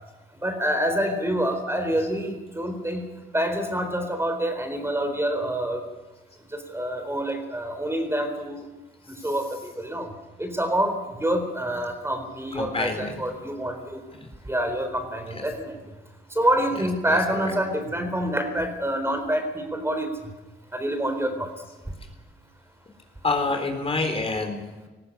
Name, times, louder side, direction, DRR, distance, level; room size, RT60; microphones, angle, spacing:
voice 1, 0.4-5.8 6.7-8.7 9.1-10.1 10.4-14.0 14.5-15.7 16.3-20.1 20.7-21.5, right 1 dB, 10° right, 6 dB, 4.0 m, -27 dB
voice 2, 12.5-13.1 14.2-14.3 17.1-17.5 23.2-24.6, left 3 dB, 30° left, 4 dB, 3.8 m, -27 dB
19.0 x 15.0 x 9.8 m, 1.1 s
cardioid pair, 90°, 20 cm